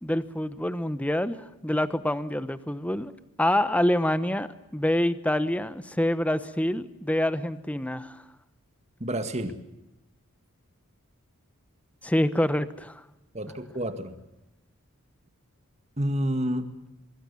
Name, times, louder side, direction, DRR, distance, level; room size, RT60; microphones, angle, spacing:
voice 1, 0.0-3.1 3.4-8.2 12.0-13.0, left 1 dB, 5° left, 13 dB, 1.0 m, -26 dB
voice 2, 9.0-9.6 13.3-14.2 16.0-16.7, right 1 dB, 30° right, 9 dB, 2.0 m, -29 dB
24.5 x 23.0 x 7.1 m, 0.93 s
head